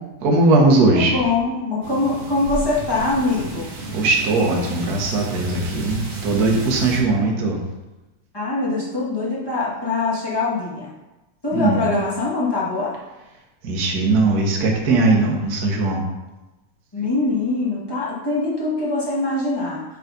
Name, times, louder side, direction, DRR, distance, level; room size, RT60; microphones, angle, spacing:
voice 1, 0.2-1.1 3.9-7.6 11.5-11.8 13.6-16.0, right 2 dB, 55° right, -1 dB, 1.0 m, -19 dB
voice 2, 0.9-3.7 8.3-10.9 11.4-12.9 16.9-19.8, left 3 dB, 25° left, -7 dB, 0.4 m, -23 dB
sound 1, 1.8-7.0, right 2 dB, 25° right, 2.5 m, -33 dB
8.9 x 4.1 x 5.3 m, 1.0 s
omnidirectional pair, 3.8 m